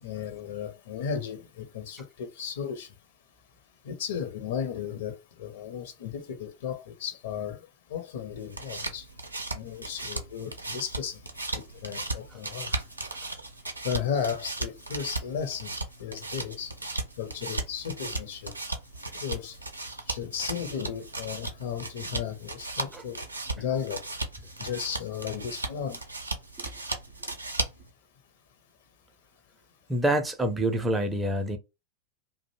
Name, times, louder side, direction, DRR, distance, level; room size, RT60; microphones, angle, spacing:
voice 1, 0.0-2.9 3.8-9.1 9.5-11.2 11.5-12.8 13.8-15.7 16.0-16.7 17.2-18.5 19.2-19.6 20.1-23.2 23.6-24.0 24.6-26.0, left 7 dB, 55° left, 0.6 m, -35 dB
sound 1, 8.3-27.9, right 2 dB, 80° right, 0.5 m, -36 dB
voice 2, 29.9-31.6, right 1 dB, 10° right, 0.5 m, -27 dB
2.5 x 2.0 x 2.7 m
figure-of-eight pair, 90°, 0 cm